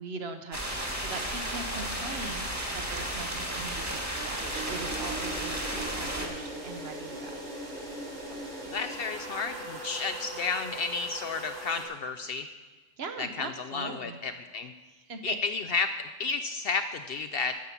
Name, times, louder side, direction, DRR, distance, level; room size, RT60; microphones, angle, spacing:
voice 1, 0.0-7.3 13.0-14.2 14.9-15.6, right 4 dB, 55° right, 7 dB, 1.0 m, -41 dB
sound 1, 0.5-6.3, right 1 dB, 15° right, 1.3 m, -33 dB
sound 2, 4.4-11.8, right 1 dB, 75° right, 2.6 m, -39 dB
voice 2, 8.7-12.5 13.2-14.7 15.2-17.5, left 4 dB, 65° left, 9 dB, 0.6 m, -32 dB
10.0 x 7.2 x 6.9 m, 1.2 s
omnidirectional pair, 1.3 m